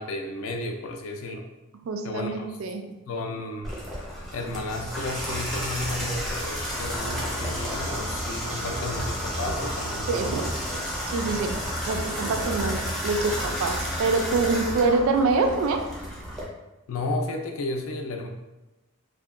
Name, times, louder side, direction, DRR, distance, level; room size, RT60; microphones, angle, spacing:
voice 1, 0.0-1.4 2.0-2.6 3.1-3.7 4.3-10.5 16.9-18.3, left 2 dB, 75° left, 4 dB, 0.4 m, -33 dB
voice 2, 1.9-2.8 10.1-10.5 11.1-11.6 11.9-15.8, right 3 dB, 70° right, 7 dB, 0.3 m, -25 dB
Water tap faucet / Bathtub (filling or washing), 3.6-16.4, equal, ahead, 0.4 m, -31 dB
2.6 x 2.1 x 2.4 m, 1.0 s
head